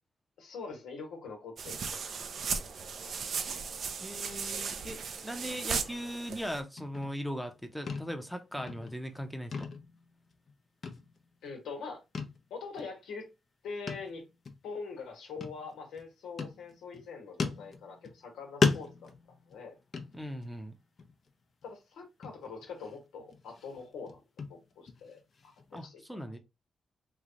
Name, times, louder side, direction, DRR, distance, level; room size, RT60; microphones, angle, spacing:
voice 1, 0.4-2.4 3.0-3.2 11.4-12.0 12.5-13.3 13.6-14.2 14.6-19.1 19.5-19.7 21.6-24.2 24.5-26.4, left 4 dB, 90° left, 1.3 m, -44 dB
sound 1, 1.6-6.6, right 5 dB, 70° right, 0.6 m, -36 dB
voice 2, 4.0-9.7 20.1-20.7 25.7-26.4, equal, ahead, 0.8 m, -39 dB
sound 2, 6.8-7.6 7.9-8.3 8.6-9.2 9.5-10.5 10.8-11.5 12.1-12.4 12.8-12.9 13.9-14.2 14.5-14.6 15.4-16.0 16.4-17.0 17.4-18.3 18.6-20.6 21.0-21.3 21.6-21.7 22.2-22.9 23.3-25.8, left 4 dB, 55° left, 0.8 m, -35 dB
3.3 x 2.3 x 3.9 m
cardioid pair, 65°, 0 cm